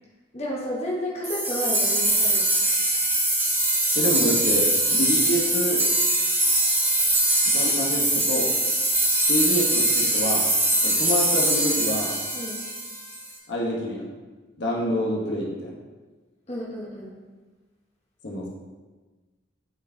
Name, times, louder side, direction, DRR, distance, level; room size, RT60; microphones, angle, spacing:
voice 1, 0.3-2.5 12.3-12.6 16.5-17.2, equal, 30° left, -5 dB, 1.0 m, -31 dB
sound 1, 1.2-13.3, right 1 dB, 10° right, 0.7 m, -22 dB
voice 2, 3.9-5.8 7.5-8.5 9.3-10.5 10.8-12.1 13.5-14.0 14.6-15.7 18.2-18.5, equal, 60° left, -3 dB, 1.1 m, -27 dB
8.1 x 4.6 x 2.7 m, 1.3 s
head